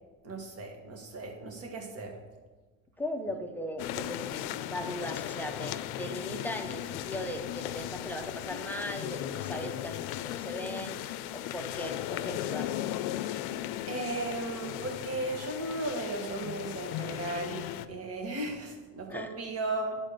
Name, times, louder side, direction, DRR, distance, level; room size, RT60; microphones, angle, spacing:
voice 1, 0.2-2.2 13.9-20.0, right 2 dB, 40° right, 3 dB, 1.5 m, -36 dB
voice 2, 3.0-11.0 11.3-12.7 19.1-19.3, equal, 5° left, 3 dB, 0.6 m, -38 dB
sound 1, 3.8-17.9, left 13 dB, 80° left, 0.5 m, -37 dB
10.5 x 4.3 x 6.6 m, 1.3 s
cardioid pair, 135°, 38 cm